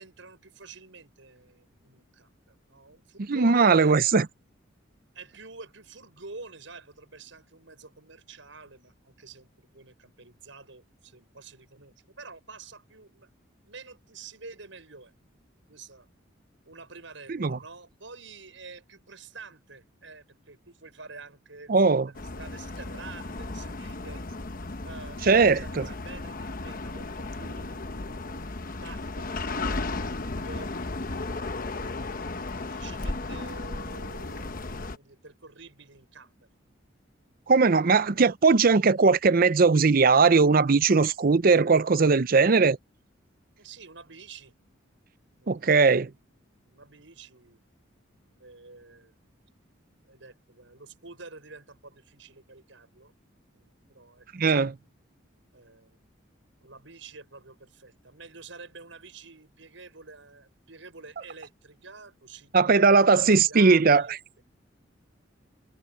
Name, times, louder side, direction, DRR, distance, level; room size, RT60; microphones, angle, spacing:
voice 1, 0.0-4.3 5.1-13.3 13.7-15.1 15.7-16.1 16.7-24.2 24.8-29.8 30.3-31.8 32.4-34.6 34.9-36.5 43.6-44.6 45.4-46.3 46.6-47.6 48.4-49.2 50.1-53.1 53.5-54.5 55.5-56.0 56.6-64.4, right 4 dB, 75° right, 6.5 m, -48 dB
voice 2, 3.3-4.3 17.4-17.6 21.7-22.1 25.3-25.8 37.5-42.8 45.5-46.1 54.3-54.7 62.5-64.0, right 4 dB, 45° right, 0.6 m, -19 dB
sound 1, 22.1-35.0, left 2 dB, 45° left, 1.0 m, -35 dB
head